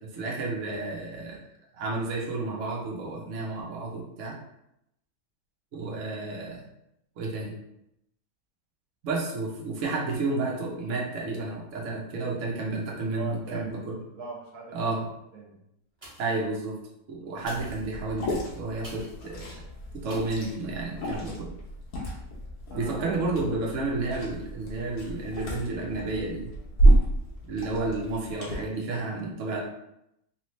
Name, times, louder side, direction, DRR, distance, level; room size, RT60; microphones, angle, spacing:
voice 1, 0.0-1.4 1.7-4.4 5.7-6.6 7.2-7.6 9.0-14.0 14.7-15.1 16.2-16.8 17.1-19.6 20.0-21.5 22.7-26.5 27.5-29.6, right 3 dB, 60° right, -3 dB, 1.1 m, -31 dB
voice 2, 13.1-13.8 14.1-15.0 15.3-15.6 22.7-23.7, right 5 dB, 85° right, -2 dB, 1.5 m, -41 dB
Toaster Pop A, 15.9-16.5 17.3-19.3 20.1-20.5 21.0-21.1, equal, 20° right, 1.1 m, -49 dB
Liquid, 17.4-28.5, right 1 dB, 85° left, 1.5 m, -29 dB
3.6 x 3.0 x 3.1 m, 0.82 s
omnidirectional pair, 1.6 m